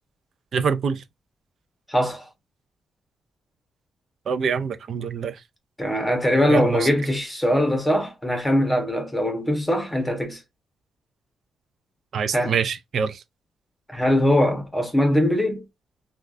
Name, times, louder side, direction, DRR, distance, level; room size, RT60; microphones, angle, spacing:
voice 1, 0.5-1.0 4.3-5.4 6.3-6.9 12.1-13.2, right 6 dB, 60° right, 0.4 m, -25 dB
voice 2, 1.9-2.3 5.8-10.4 12.3-12.5 13.9-15.6, left 1 dB, 5° left, 1.1 m, -21 dB
3.2 x 2.3 x 2.4 m
cardioid pair, 100°, 0 cm